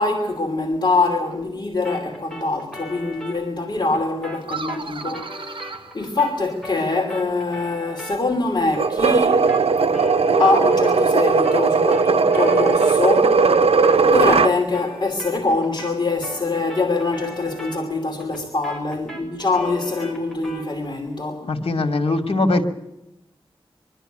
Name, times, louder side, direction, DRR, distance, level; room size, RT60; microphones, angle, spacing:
voice 1, 0.0-9.5 10.4-13.4 14.1-21.5, left 3 dB, 45° left, 2.9 m, -24 dB
sound 1, 1.8-11.2 11.4-20.7, left 1 dB, 5° left, 6.2 m, -39 dB
sound 2, 4.4-6.9, right 4 dB, 55° right, 1.2 m, -35 dB
sound 3, 8.8-14.5, right 4 dB, 80° right, 0.8 m, -17 dB
voice 2, 21.4-22.6, left 2 dB, 70° left, 2.6 m, -21 dB
23.5 x 13.0 x 9.1 m
wide cardioid pair, 80°, 10 cm